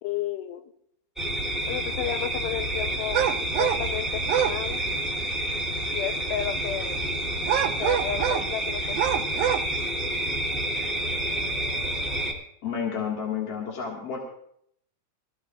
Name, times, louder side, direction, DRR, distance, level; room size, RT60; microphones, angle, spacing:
voice 1, 0.0-0.7 1.6-4.8 5.9-7.1 7.8-9.4, left 11 dB, 90° left, 8 dB, 3.0 m, -33 dB
sound 1, 1.2-12.3, right 1 dB, ahead, 2.2 m, -29 dB
sound 2, 3.1-3.8 4.2-4.6 7.4-8.5 8.9-9.7, right 11 dB, 85° right, 2.0 m, -25 dB
voice 2, 12.6-14.2, left 7 dB, 45° left, -2 dB, 2.5 m, -30 dB
22.0 x 15.0 x 2.5 m, 0.69 s
omnidirectional pair, 4.7 m